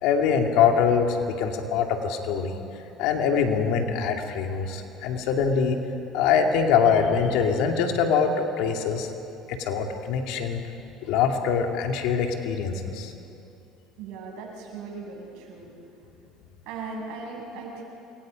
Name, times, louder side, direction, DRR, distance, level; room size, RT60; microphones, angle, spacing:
voice 1, 0.0-2.6 3.0-5.8 6.1-9.1 9.5-10.6 11.1-13.1, left 6 dB, 75° left, 3 dB, 2.5 m, -23 dB
voice 2, 14.0-15.7 16.7-17.8, right 4 dB, 75° right, -1 dB, 7.3 m, -38 dB
28.0 x 23.0 x 5.2 m, 2.7 s
supercardioid pair, 100°, 0 cm